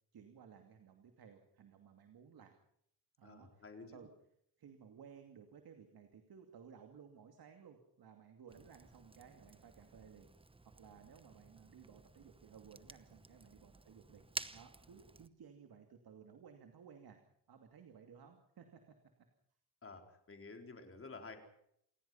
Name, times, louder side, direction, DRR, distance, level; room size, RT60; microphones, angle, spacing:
voice 1, 0.1-2.6 3.2-4.1 4.6-10.3 10.6-14.2 14.5-17.2 17.5-19.0, right 7 dB, 65° right, 5 dB, 2.7 m, -58 dB
voice 2, 3.2-4.0 19.8-21.4, left 3 dB, 35° left, 4 dB, 4.3 m, -51 dB
Fire, 8.5-15.3, right 3 dB, 15° right, 1.0 m, -52 dB
28.0 x 19.5 x 5.8 m, 0.72 s
wide cardioid pair, 145°, 40 cm